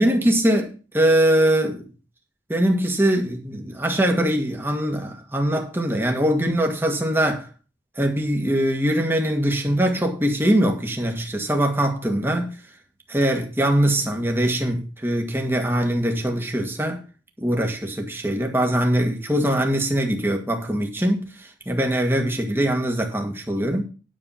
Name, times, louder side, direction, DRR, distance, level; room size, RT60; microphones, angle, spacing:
voice 1, 0.0-1.9 2.5-7.5 8.0-12.5 13.1-17.0 17.4-23.8, right 1 dB, 10° right, 1.8 m, -22 dB
10.0 x 7.3 x 5.7 m
head